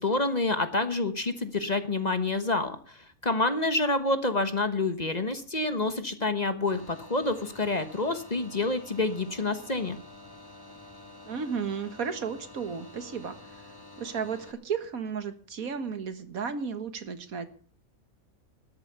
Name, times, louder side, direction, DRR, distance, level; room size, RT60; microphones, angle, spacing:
voice 1, 0.0-10.0, left 2 dB, 30° left, 10 dB, 1.2 m, -28 dB
sound 1, 6.7-14.5, left 2 dB, 15° left, 1.8 m, -49 dB
voice 2, 11.2-13.6 14.0-17.5, right 6 dB, 80° right, 10 dB, 1.9 m, -34 dB
13.5 x 11.0 x 6.8 m, 0.42 s
omnidirectional pair, 1.5 m